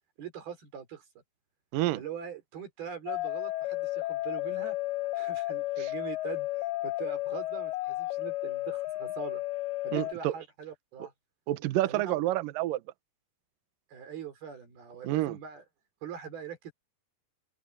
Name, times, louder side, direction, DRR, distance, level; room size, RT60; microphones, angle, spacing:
voice 1, 0.2-1.0 1.9-4.8 5.1-9.4 9.8-11.1 11.8-12.2 13.9-15.6 16.0-16.7, right 7 dB, 60° right, 6.2 m, -42 dB
sound 1, 3.1-10.1, left 17 dB, 85° left, 2.2 m, -33 dB
voice 2, 9.9-10.3 11.5-12.8 15.0-15.4, right 15 dB, 85° right, 2.0 m, -28 dB
open air
omnidirectional pair, 5.1 m